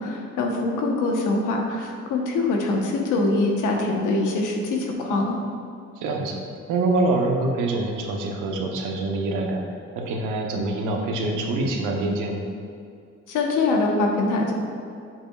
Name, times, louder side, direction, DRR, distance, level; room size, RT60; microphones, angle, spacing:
voice 1, 0.0-5.4 13.3-14.5, left 2 dB, 85° left, 1 dB, 1.1 m, -23 dB
voice 2, 5.9-12.4, right 2 dB, 90° right, 1 dB, 1.0 m, -25 dB
7.6 x 7.3 x 2.4 m, 2.4 s
cardioid pair, 90°, 30 cm